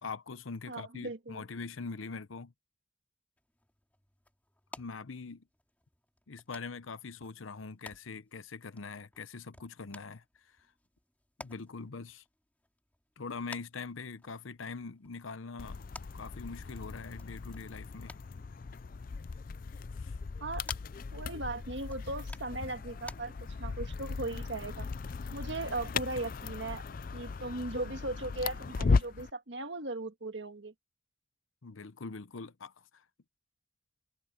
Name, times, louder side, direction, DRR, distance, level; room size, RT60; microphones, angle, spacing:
voice 1, 0.0-2.5 4.8-5.4 6.3-10.2 11.4-12.2 13.2-15.8 16.1-18.2 20.0-20.1 31.6-32.8, left 4 dB, 85° left, 0.8 m, -43 dB
voice 2, 0.7-1.4 20.4-20.7 21.1-23.3 23.6-24.9 25.3-26.8 27.1-30.7, right 2 dB, 65° right, 1.8 m, -38 dB
sound 1, 3.4-23.2, left 2 dB, 10° left, 2.7 m, -55 dB
sound 2, 15.6-29.3, left 4 dB, 45° left, 0.4 m, -37 dB
head